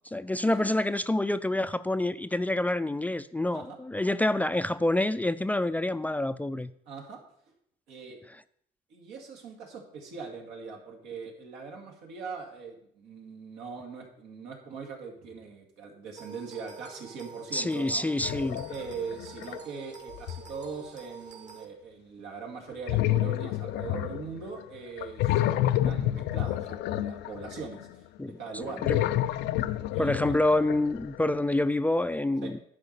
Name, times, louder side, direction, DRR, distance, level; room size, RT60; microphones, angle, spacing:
voice 1, 0.1-6.7 17.5-18.7 28.2-29.0 30.0-32.6, left 1 dB, 10° left, 13 dB, 0.3 m, -27 dB
voice 2, 6.9-7.2 7.9-8.2 8.9-18.2 18.7-28.1 28.4-28.9 29.9-30.3 32.4-32.5, right 5 dB, 90° right, 2 dB, 2.3 m, -41 dB
sound 1, 16.2-21.6, right 6 dB, 45° right, 1.4 m, -47 dB
sound 2, 18.2-19.6 20.1-20.6 22.9-24.6 25.0-27.8 28.6-31.2, left 13 dB, 85° left, 0.5 m, -29 dB
11.0 x 4.9 x 6.6 m, 0.68 s
cardioid pair, 110°, 17 cm